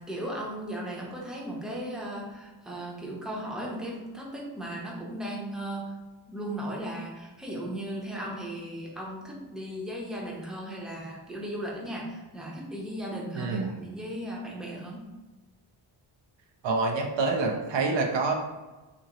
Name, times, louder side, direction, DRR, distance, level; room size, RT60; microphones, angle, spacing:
voice 1, 0.0-6.0 6.3-15.0, right 1 dB, ahead, -3 dB, 0.7 m, -36 dB
voice 2, 13.3-13.7 16.6-18.3, right 3 dB, 70° right, 1 dB, 0.6 m, -26 dB
2.7 x 2.6 x 2.9 m, 1.2 s
cardioid pair, 70°, 47 cm